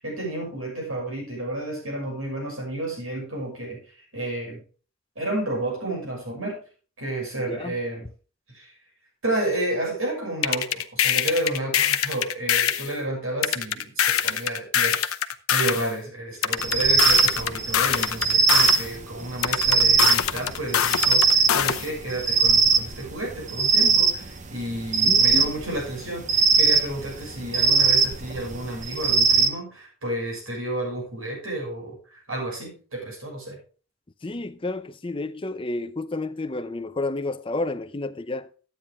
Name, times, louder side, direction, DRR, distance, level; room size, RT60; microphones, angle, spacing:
voice 1, 0.0-3.8 4.1-4.6 5.1-6.6 7.0-8.1 8.5-8.7 9.2-15.0 15.5-33.6, right 1 dB, 70° right, 6.4 m, -31 dB
voice 2, 7.4-7.8 25.1-25.6 34.2-38.5, left 2 dB, 25° left, 0.5 m, -30 dB
sound 1, 10.4-12.9 13.4-15.9 16.4-18.9 19.4-21.9, left 9 dB, 75° left, 0.8 m, -23 dB
sound 2, 16.6-29.5, right 5 dB, 35° right, 0.7 m, -21 dB
12.0 x 9.1 x 3.6 m
head